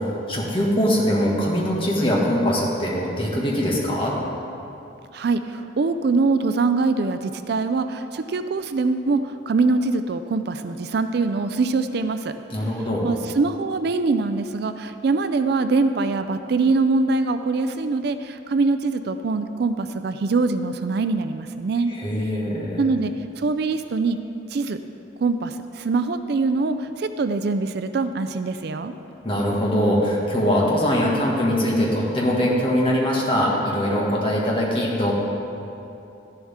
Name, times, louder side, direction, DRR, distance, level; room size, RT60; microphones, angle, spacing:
voice 1, 0.0-4.2 12.5-13.0 21.9-22.8 29.2-35.1, equal, 25° left, -4 dB, 1.8 m, -22 dB
voice 2, 5.1-12.3 13.0-21.9 22.8-24.2 24.5-24.8 25.2-28.9, right 3 dB, 55° right, 9 dB, 0.4 m, -23 dB
12.5 x 11.5 x 3.6 m, 2.8 s
head